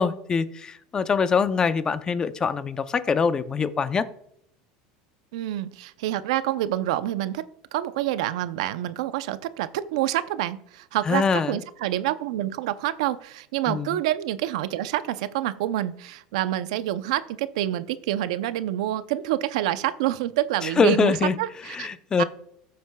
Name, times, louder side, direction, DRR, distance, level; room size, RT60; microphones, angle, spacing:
voice 1, 0.0-4.1 11.1-11.6 13.7-13.9 20.8-21.3 21.7-22.2, left 5 dB, 20° left, 13 dB, 0.6 m, -23 dB
voice 2, 5.3-7.5 7.7-21.9 22.2-22.3, right 13 dB, 80° right, 13 dB, 0.6 m, -27 dB
14.0 x 7.5 x 2.3 m, 0.73 s
supercardioid pair, 130°, 3 cm